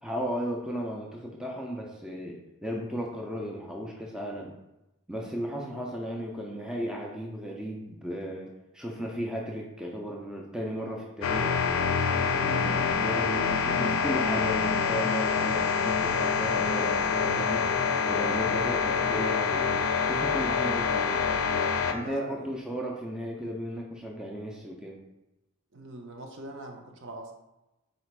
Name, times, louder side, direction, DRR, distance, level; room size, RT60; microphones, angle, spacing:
voice 1, 0.0-4.5 5.1-11.5 12.3-17.7 18.1-19.7 20.0-21.2 21.9-25.0, equal, 5° right, -1 dB, 0.3 m, -35 dB
sound 1, 11.2-21.9, left 5 dB, 75° left, 0.4 m, -26 dB
voice 2, 21.9-22.5 25.7-27.3, right 2 dB, 55° right, 3 dB, 0.6 m, -42 dB
4.0 x 2.4 x 4.4 m, 0.97 s
head